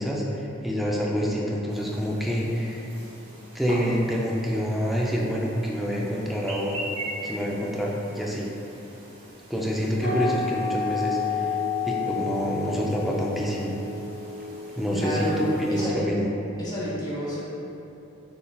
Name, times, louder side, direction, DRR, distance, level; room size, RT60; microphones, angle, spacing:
voice 1, 0.0-2.8 3.5-6.8 7.2-8.5 9.5-11.5 11.9-13.7 14.7-16.3, equal, ahead, -3 dB, 0.3 m, -27 dB
Chirp tweet, 1.7-15.9, right 1 dB, 30° right, 0.7 m, -43 dB
sound 1, 10.0-15.4, left 5 dB, 75° left, 1.1 m, -30 dB
voice 2, 14.9-16.0 16.6-17.4, equal, 20° left, -8 dB, 0.8 m, -30 dB
3.8 x 3.8 x 2.3 m, 2.9 s
head